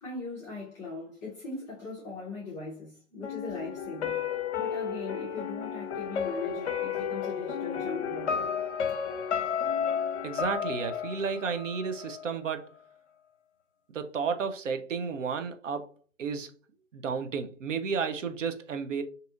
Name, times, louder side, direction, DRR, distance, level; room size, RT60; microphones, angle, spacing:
voice 1, 0.0-4.3 4.5-8.5, left 4 dB, 10° left, 0.5 m, -39 dB
sound 1, 3.2-12.2 12.5-12.6, left 7 dB, 60° left, 0.6 m, -32 dB
voice 2, 10.2-12.7 13.9-15.9 16.2-16.5 16.9-19.0, right 6 dB, 70° right, 0.7 m, -32 dB
2.7 x 2.5 x 3.7 m
figure-of-eight pair, 125°, 39 cm